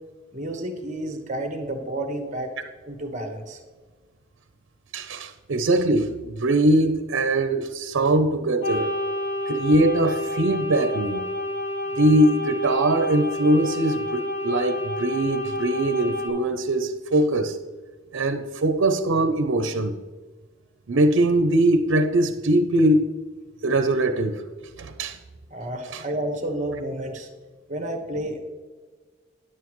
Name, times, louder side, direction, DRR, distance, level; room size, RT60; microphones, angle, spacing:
voice 1, 0.3-2.5 2.9-3.6 25.5-27.3 27.7-28.4, right 1 dB, 35° right, 4 dB, 1.2 m, -30 dB
voice 2, 4.9-8.9 9.5-11.3 12.0-17.6 18.1-20.0 20.9-23.1 23.6-24.4 24.8-25.2 25.9-26.0, right 1 dB, 80° right, 8 dB, 0.6 m, -21 dB
sound 1, 8.6-16.3, left 1 dB, 65° left, 2.1 m, -29 dB
10.0 x 9.2 x 3.1 m, 1.3 s
head